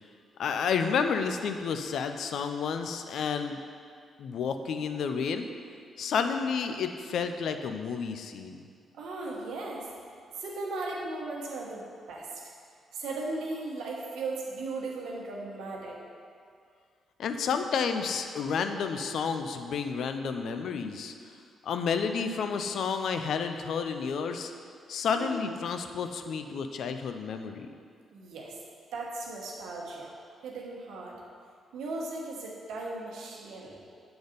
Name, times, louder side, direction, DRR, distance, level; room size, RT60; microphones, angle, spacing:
voice 1, 0.4-3.6 4.2-5.4 6.0-8.7 17.2-21.1 21.6-24.5 24.9-27.7, left 6 dB, 70° left, 7 dB, 0.4 m, -30 dB
voice 2, 8.9-9.9 10.4-12.3 12.9-16.0 25.1-25.4 28.1-28.6 28.9-30.2 30.4-31.1 31.7-33.8, right 2 dB, 80° right, -2 dB, 1.1 m, -37 dB
6.9 x 3.9 x 5.0 m, 2.2 s
supercardioid pair, 60°, 0 cm